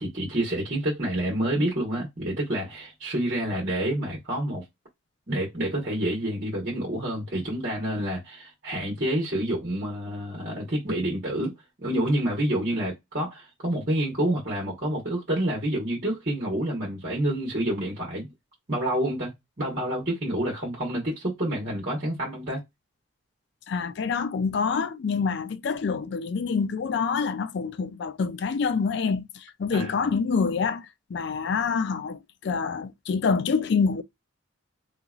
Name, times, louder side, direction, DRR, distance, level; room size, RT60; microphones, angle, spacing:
voice 1, 0.0-4.6 5.3-18.3 18.7-19.3 19.6-22.6 29.7-30.1, right 1 dB, 40° right, 1.3 m, -28 dB
voice 2, 23.7-34.0, left 5 dB, 55° left, 0.3 m, -26 dB
3.9 x 2.9 x 2.4 m
head